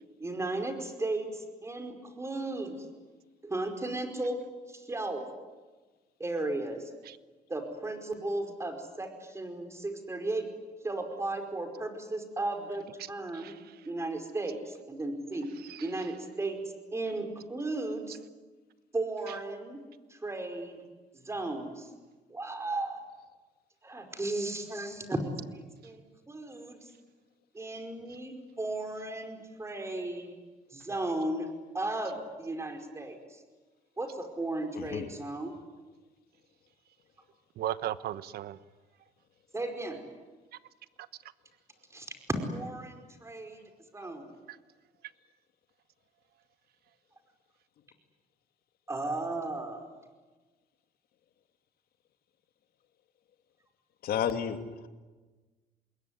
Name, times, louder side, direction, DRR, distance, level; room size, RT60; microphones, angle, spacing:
voice 1, 0.2-2.7 3.4-4.4 4.7-5.2 6.2-6.9 7.5-10.5 10.8-13.5 13.8-15.5 15.8-16.6 16.9-18.2 18.9-19.8 20.1-20.9 21.1-21.9 22.3-23.0 23.8-26.9 27.5-30.3 30.7-33.4 34.0-35.5 39.5-40.0 41.9-42.1 42.5-43.6 43.9-44.3 48.9-49.9, right 2 dB, 15° right, 6 dB, 5.0 m, -35 dB
voice 2, 13.0-13.8 15.7-15.9 19.3-19.4 37.6-38.6 40.5-40.6 41.0-41.1 44.5-44.6, right 12 dB, 70° right, 15 dB, 1.1 m, -37 dB
voice 3, 34.7-35.1 54.0-54.9, left 8 dB, 65° left, 7 dB, 2.6 m, -32 dB
27.0 x 21.5 x 9.8 m, 1.3 s
cardioid pair, 110°, 17 cm